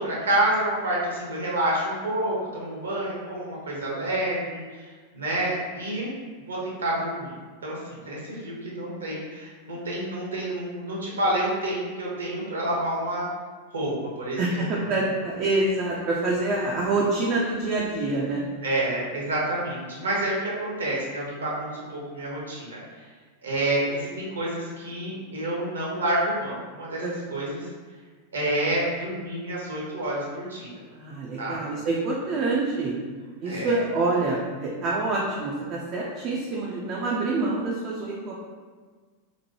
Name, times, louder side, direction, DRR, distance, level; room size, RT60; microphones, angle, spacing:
voice 1, 0.0-4.9 5.1-6.1 6.5-7.3 7.6-13.2 13.7-14.6 14.9-15.0 18.6-22.8 23.4-27.0 27.3-27.7 28.3-30.7 31.4-31.6 33.4-33.7, right 1 dB, 70° right, -5 dB, 0.8 m, -28 dB
voice 2, 14.4-18.4 27.0-27.3 30.9-33.0 33.4-38.3, right 2 dB, 40° right, -4 dB, 0.4 m, -26 dB
3.0 x 2.1 x 2.8 m, 1.5 s
figure-of-eight pair, 90°, 0 cm